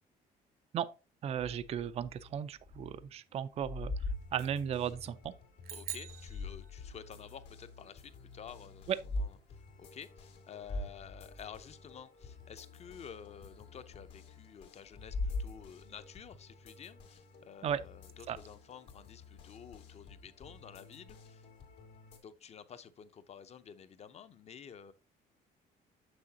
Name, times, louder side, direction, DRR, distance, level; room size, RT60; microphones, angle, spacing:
voice 1, 1.2-3.9 4.3-5.3 8.9-9.0 17.6-17.8 18.3-18.4, right 9 dB, 40° right, 0.4 m, -35 dB
sound 1, 1.4-3.0 3.3-5.1 6.0-7.0 7.5-7.6 8.8-9.3 9.7-9.8 10.3-10.4 10.6-11.9 14.9-16.0, left 2 dB, 60° left, 1.8 m, -40 dB
sound 2, 4.0-22.2, left 4 dB, 80° left, 2.1 m, -55 dB
sound 3, 5.6-7.3, right 10 dB, 65° right, 0.8 m, -45 dB
voice 2, 5.7-9.4 9.8-21.5 22.2-24.9, left 7 dB, 40° left, 0.7 m, -51 dB
6.9 x 6.2 x 2.8 m
cardioid pair, 110°, 17 cm